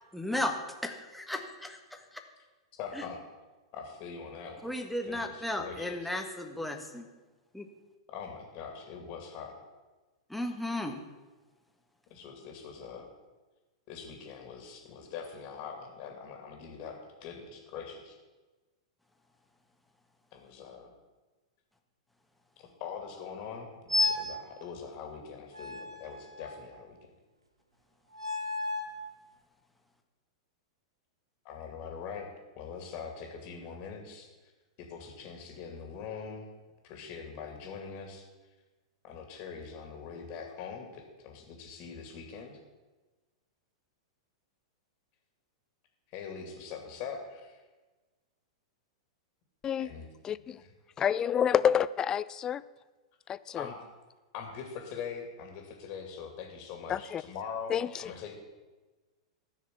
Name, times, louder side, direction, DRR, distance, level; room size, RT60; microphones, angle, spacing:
voice 1, 0.1-0.6 0.8-2.0 3.0-3.1 4.6-7.0 7.5-7.7 10.3-11.0, left 1 dB, ahead, 4 dB, 1.7 m, -35 dB
voice 2, 2.8-3.2 3.7-4.7 5.0-6.1 8.1-9.5 12.1-13.1 13.9-18.2 20.3-20.9 22.6-27.0 31.4-32.3 32.6-34.5 34.8-36.5 36.8-38.2 39.0-42.6 46.1-47.6 49.8-50.0 50.6-50.7 53.6-53.8 54.3-57.7 58.0-58.4, left 6 dB, 40° left, 2 dB, 2.7 m, -43 dB
sound 1, 23.9-24.4 25.5-26.8 28.1-29.0, left 2 dB, 85° right, 1.4 m, -32 dB
voice 3, 50.2-50.6 51.0-52.6 53.3-53.6 56.9-57.2 57.7-57.9, left 8 dB, 25° left, 17 dB, 0.4 m, -28 dB
14.5 x 6.5 x 8.4 m, 1.2 s
figure-of-eight pair, 100°, 3 cm